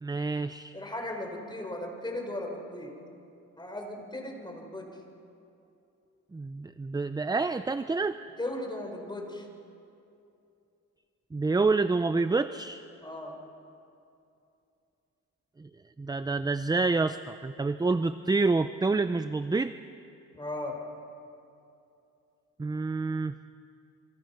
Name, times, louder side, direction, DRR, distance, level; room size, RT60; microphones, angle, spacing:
voice 1, 0.0-0.7 6.3-8.2 11.3-12.8 15.6-15.7 16.0-19.7 22.6-23.3, right 3 dB, 15° right, 12 dB, 0.6 m, -28 dB
voice 2, 0.7-2.9 3.6-4.9 8.4-9.5 13.0-13.4 20.3-20.8, left 1 dB, 15° left, 2 dB, 5.1 m, -37 dB
29.0 x 24.5 x 5.9 m, 2.7 s
cardioid pair, 90°, 30 cm